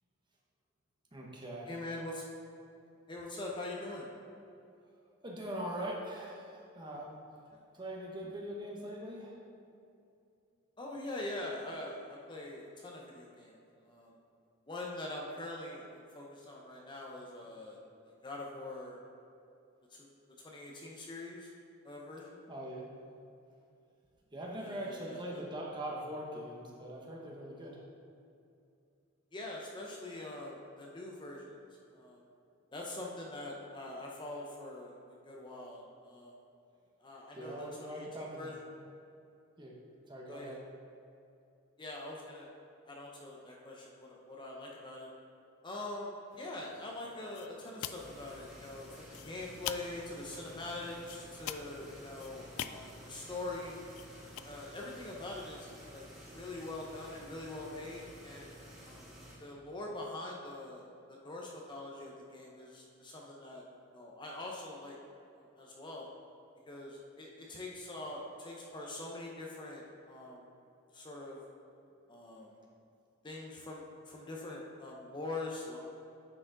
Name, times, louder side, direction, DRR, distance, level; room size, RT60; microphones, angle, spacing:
voice 1, 1.1-1.8 5.2-7.2 7.7-9.4 22.5-22.9 24.3-27.8 37.3-38.5 39.6-39.7 40.1-40.6, right 1 dB, 20° right, -2 dB, 1.0 m, -42 dB
voice 2, 1.7-2.2 3.1-4.1 10.8-13.6 13.8-14.1 14.7-17.8 18.0-19.0 19.9-20.1 20.4-21.5 21.8-22.4 24.6-25.4 29.3-31.6 31.9-32.2 32.7-36.4 37.0-38.6 40.3-40.6 41.8-42.5 42.9-45.1 45.6-53.8 54.4-56.1 56.3-58.5 58.8-59.1 59.4-63.6 63.9-65.0 65.3-66.1 66.7-70.4 70.9-71.4 72.1-72.5 73.2-75.8, left 2 dB, 20° left, -2 dB, 0.7 m, -44 dB
sound 1, 46.3-54.4, left 10 dB, 80° left, 0.3 m, -47 dB
sound 2, 47.9-59.4, equal, ahead, 1.6 m, -52 dB
9.7 x 4.8 x 3.8 m, 2.6 s
head